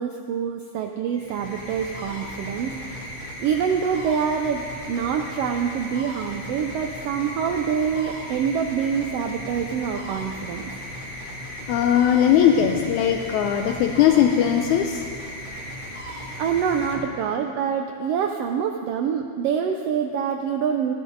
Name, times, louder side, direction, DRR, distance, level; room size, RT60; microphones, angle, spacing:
voice 1, 0.0-3.1 3.4-10.6 11.0-11.1 16.4-20.9, right 7 dB, 90° right, 4 dB, 1.3 m, -26 dB
sound 1, 1.1-17.6, equal, 20° left, 1.7 m, -36 dB
voice 2, 11.7-15.0, left 9 dB, 80° left, 5 dB, 2.0 m, -19 dB
16.5 x 13.0 x 3.9 m, 2.2 s
omnidirectional pair, 3.5 m